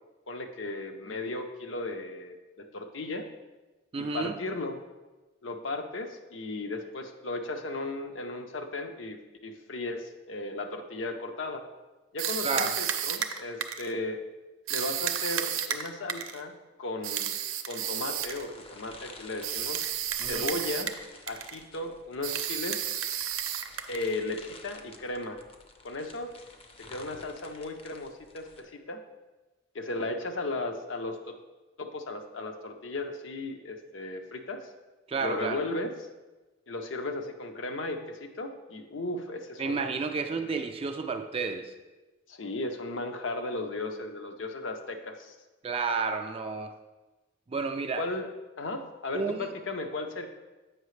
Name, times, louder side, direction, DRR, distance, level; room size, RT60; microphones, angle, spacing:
voice 1, 0.3-3.3 4.0-4.8 5.4-11.7 12.1-14.2 14.7-16.5 16.8-17.4 17.7-19.8 20.3-20.9 21.3-22.9 23.9-25.4 25.8-26.3 26.9-29.0 29.7-31.4 31.8-34.7 35.2-35.9 36.7-39.9 42.3-45.3 48.0-48.3 48.6-50.3, left 2 dB, 70° left, 6 dB, 0.6 m, -35 dB
voice 2, 3.9-4.4 12.4-12.7 20.2-20.5 35.1-35.6 39.6-41.7 45.6-46.7 47.5-48.0 49.1-49.5, right 4 dB, 30° right, 5 dB, 0.3 m, -31 dB
sound 1, 12.2-13.9 14.7-16.4 17.0-18.4 19.4-21.0 21.3-21.6 22.2-24.1, right 10 dB, 85° right, 0.5 m, -32 dB
sound 2, 18.1-28.6, left 2 dB, 30° left, 0.5 m, -51 dB
7.9 x 5.6 x 3.1 m, 1.2 s
head